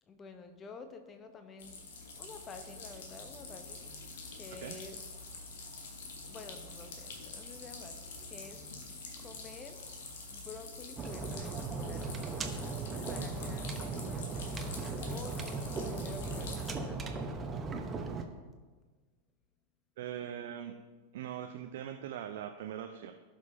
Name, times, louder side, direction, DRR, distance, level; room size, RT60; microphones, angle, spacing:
voice 1, 0.1-3.8 4.4-5.0 6.2-8.7 9.2-9.8 10.3-12.3 13.1-14.3 15.1-17.6, left 4 dB, 20° left, 7 dB, 1.0 m, -50 dB
sound 1, 1.6-16.7, left 3 dB, 60° left, 1.4 m, -46 dB
sound 2, 11.0-18.2, right 4 dB, 20° right, 0.9 m, -37 dB
voice 2, 20.0-20.7 21.1-23.1, right 10 dB, 55° right, 5 dB, 0.5 m, -41 dB
16.5 x 6.3 x 2.8 m, 1.4 s
figure-of-eight pair, 90°, 0 cm